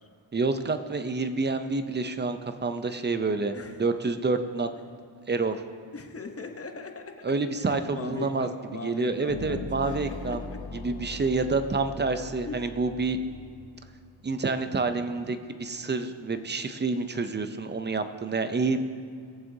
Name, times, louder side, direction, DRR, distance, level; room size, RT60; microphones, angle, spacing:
voice 1, 0.3-4.7 5.3-5.6 7.2-8.5 8.8-10.4 10.7-13.2 14.2-18.8, right 3 dB, 20° right, 9 dB, 0.5 m, -28 dB
voice 2, 3.5-4.1 5.9-7.0 7.6-10.6 12.5-12.6, left 4 dB, 30° left, 5 dB, 0.9 m, -39 dB
sound 1, 9.3-14.5, left 3 dB, 70° left, 0.8 m, -41 dB
17.5 x 7.3 x 2.7 m, 2.2 s
cardioid pair, 105°, 49 cm